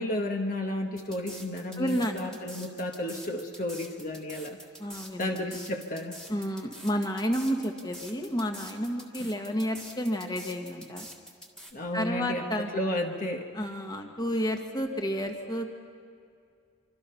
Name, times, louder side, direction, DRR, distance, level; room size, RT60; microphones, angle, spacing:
voice 1, 0.0-4.6 5.2-6.2 9.2-9.3 11.7-13.5, left 1 dB, 40° left, 2 dB, 1.3 m, -32 dB
sound 1, 1.0-11.7, equal, 5° left, 1.8 m, -45 dB
voice 2, 1.8-2.4 4.8-5.3 6.3-11.1 11.9-12.7 13.5-15.7, equal, 20° left, 4 dB, 1.6 m, -31 dB
26.0 x 25.5 x 5.7 m, 2.3 s
head